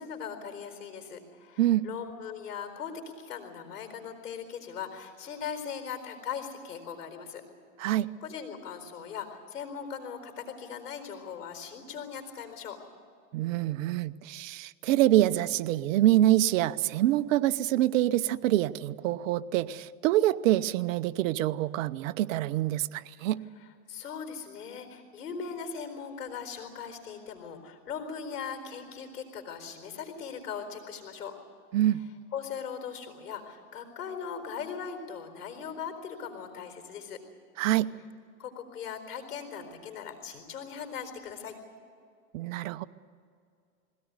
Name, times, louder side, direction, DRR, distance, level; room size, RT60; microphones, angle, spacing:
voice 1, 0.0-2.9 3.2-7.4 7.8-12.8 23.9-31.4 32.3-37.2 38.4-41.6, left 7 dB, 90° left, 7 dB, 4.4 m, -39 dB
voice 2, 13.3-23.4 31.7-32.0 37.6-37.9 42.3-42.8, right 14 dB, 60° right, 13 dB, 0.9 m, -26 dB
21.0 x 17.0 x 9.6 m, 2.3 s
hypercardioid pair, 125°, 44 cm